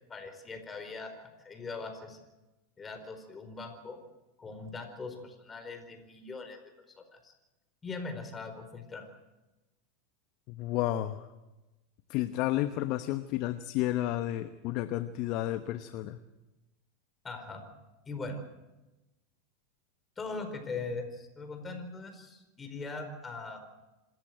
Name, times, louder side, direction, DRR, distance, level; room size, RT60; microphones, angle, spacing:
voice 1, 0.1-1.1 1.4-2.2 2.8-4.0 4.4-6.6 7.0-7.3 7.8-9.1 17.2-17.6 18.1-18.4 20.2-23.6, left 3 dB, 20° left, 7 dB, 4.7 m, -40 dB
voice 2, 10.5-11.2 12.1-16.2, left 14 dB, 50° left, 10 dB, 1.0 m, -31 dB
26.5 x 14.0 x 7.9 m, 1.1 s
hypercardioid pair, 90°, 0 cm